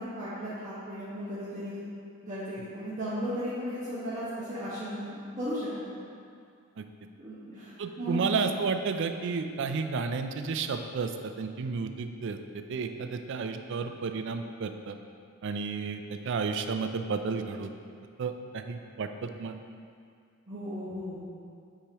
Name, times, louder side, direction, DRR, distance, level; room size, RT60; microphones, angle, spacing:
voice 1, 0.0-1.8 2.2-6.0 7.2-7.7 8.0-8.2 20.5-21.2, equal, 35° right, -13 dB, 1.4 m, -35 dB
voice 2, 7.8-12.4 12.7-14.9 15.4-17.7 18.2-19.6, right 5 dB, 60° right, 7 dB, 0.4 m, -32 dB
8.5 x 4.8 x 3.0 m, 2.3 s
head